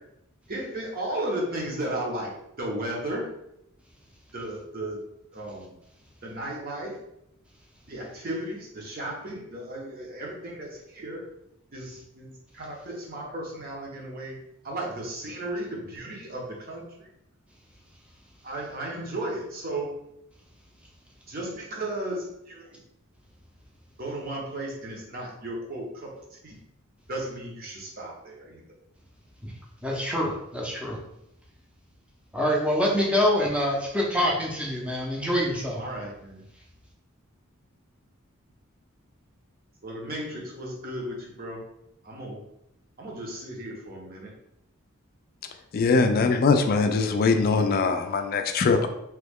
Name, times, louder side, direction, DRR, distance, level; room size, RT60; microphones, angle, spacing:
voice 1, 0.5-2.3 2.6-3.3 4.3-5.0 5.3-5.8 6.2-7.0 7.9-11.2 11.7-12.3 12.5-14.4 14.6-17.1 18.4-19.9 21.3-22.8 24.0-26.6 27.1-28.6 35.7-36.4 39.8-41.6 42.0-42.4 43.0-44.3 45.9-46.0, right 1 dB, 45° right, -2 dB, 0.8 m, -35 dB
voice 2, 29.8-31.0 32.3-35.8, equal, 5° right, -3 dB, 0.6 m, -25 dB
voice 3, 45.7-48.9, left 4 dB, 45° left, 7 dB, 0.3 m, -22 dB
3.0 x 2.2 x 3.5 m, 0.80 s
head